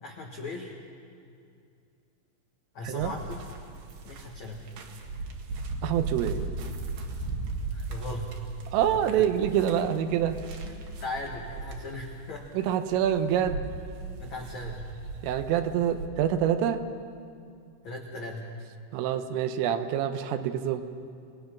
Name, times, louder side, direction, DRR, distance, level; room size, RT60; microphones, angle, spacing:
voice 1, 0.0-0.7 2.7-3.4 4.0-4.6 7.7-8.3 8.9-9.3 10.6-12.4 14.2-14.8 17.8-18.4, left 2 dB, 80° left, 0 dB, 1.6 m, -38 dB
sound 1, 3.0-16.1, right 3 dB, 60° right, 3.4 m, -37 dB
voice 2, 5.8-6.4 8.7-10.4 12.6-13.7 15.2-16.8 18.9-20.8, right 10 dB, 80° right, 8 dB, 3.4 m, -26 dB
28.5 x 19.5 x 5.9 m, 2.4 s
omnidirectional pair, 6.0 m